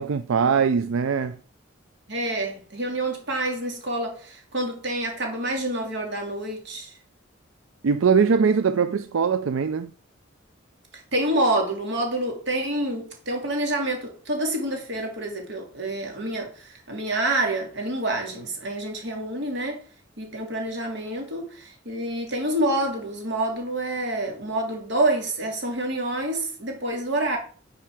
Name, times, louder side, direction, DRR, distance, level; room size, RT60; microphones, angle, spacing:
voice 1, 0.0-1.4 7.8-9.9, right 6 dB, 90° right, 0.4 m, -21 dB
voice 2, 2.1-6.9 11.1-19.8 20.2-27.4, right 1 dB, 60° right, 2.8 m, -27 dB
10.0 x 4.8 x 4.8 m
head